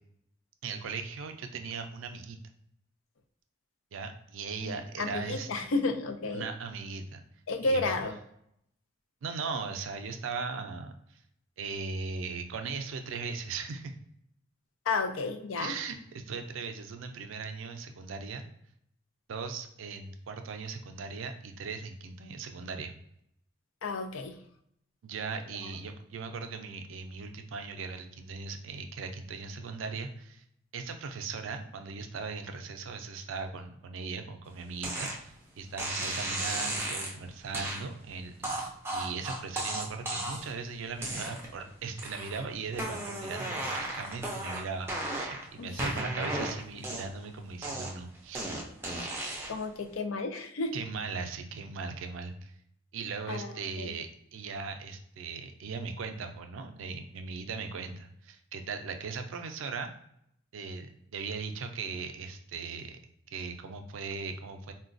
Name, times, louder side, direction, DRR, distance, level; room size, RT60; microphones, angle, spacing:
voice 1, 0.6-2.4 3.9-5.5 6.3-7.2 7.6-7.9 9.2-10.9 11.6-13.9 15.6-18.4 19.3-22.9 25.0-30.4 30.7-38.6 38.9-48.5 50.7-52.6 52.9-59.9 60.5-63.0 63.3-64.7, right 4 dB, 80° right, 7 dB, 0.4 m, -38 dB
voice 2, 4.6-6.5 7.5-8.2 14.9-15.7 23.8-24.4 45.6-45.7 49.5-50.7 53.3-53.5 53.8-53.9, left 3 dB, 85° left, 7 dB, 0.4 m, -32 dB
sound 1, 34.8-35.2 35.8-37.1 37.5-37.8 38.4-40.5 41.0-41.6 42.0-42.4 42.7-45.4 45.8-47.2 47.6-49.6, right 1 dB, 10° right, 0.4 m, -35 dB
3.8 x 2.2 x 2.5 m, 0.74 s
head